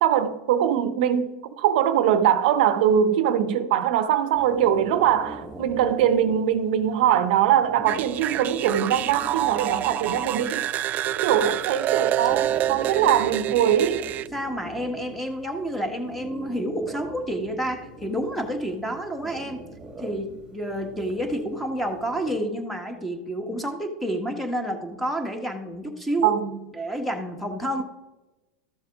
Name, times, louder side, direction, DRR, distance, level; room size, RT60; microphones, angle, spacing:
voice 1, 0.0-10.7 11.2-14.0 26.2-26.6, right 9 dB, 70° right, 0.7 m, -22 dB
sound 1, 4.3-22.3, right 2 dB, 15° right, 1.5 m, -42 dB
sound 2, 7.9-14.3, right 12 dB, 35° right, 0.3 m, -27 dB
voice 2, 14.3-19.6 20.0-26.4 26.7-27.8, right 1 dB, ahead, 1.3 m, -29 dB
13.5 x 7.0 x 3.6 m
supercardioid pair, 130°, 5 cm